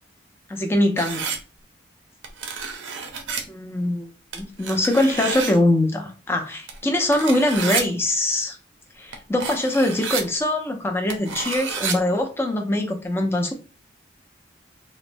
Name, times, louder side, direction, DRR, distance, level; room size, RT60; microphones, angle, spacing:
voice 1, 0.5-1.3 3.5-8.6 9.0-13.5, left 1 dB, 15° left, 0.4 m, -23 dB
sound 1, 1.0-1.4 2.2-3.4 4.3-5.6 6.7-6.8 7.1-7.8 9.1-9.2 9.4-10.2 11.1-11.9, right 5 dB, 80° right, 0.5 m, -29 dB
3.1 x 2.0 x 2.5 m
head